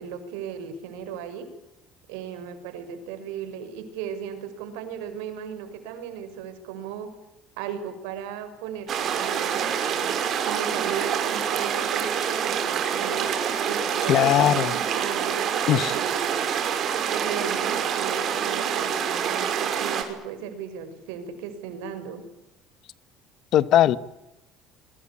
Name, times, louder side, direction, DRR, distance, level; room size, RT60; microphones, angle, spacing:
voice 1, 0.0-1.5 2.1-7.1 7.6-13.3 13.7-16.4 17.1-22.2, right 7 dB, 90° right, 9 dB, 6.0 m, -36 dB
sound 1, 8.9-20.0, right 8 dB, 50° right, 5.5 m, -26 dB
voice 2, 14.1-14.7 15.7-16.0 23.5-24.0, left 12 dB, 55° left, 16 dB, 1.3 m, -19 dB
28.0 x 23.5 x 8.6 m, 0.93 s
cardioid pair, 115°, 0 cm